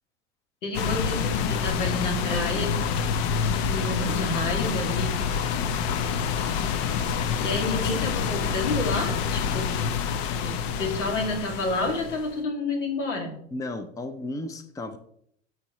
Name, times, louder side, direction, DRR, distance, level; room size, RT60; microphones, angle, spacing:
voice 1, 0.6-2.7 3.5-5.2 7.4-9.7 10.4-13.3, left 2 dB, 85° left, 2 dB, 2.5 m, -29 dB
sound 1, 0.7-12.3, left 6 dB, 60° left, 0.9 m, -27 dB
voice 2, 13.5-15.0, left 2 dB, 10° left, 10 dB, 0.6 m, -34 dB
13.0 x 4.7 x 3.1 m, 0.68 s
hypercardioid pair, 105°, 36 cm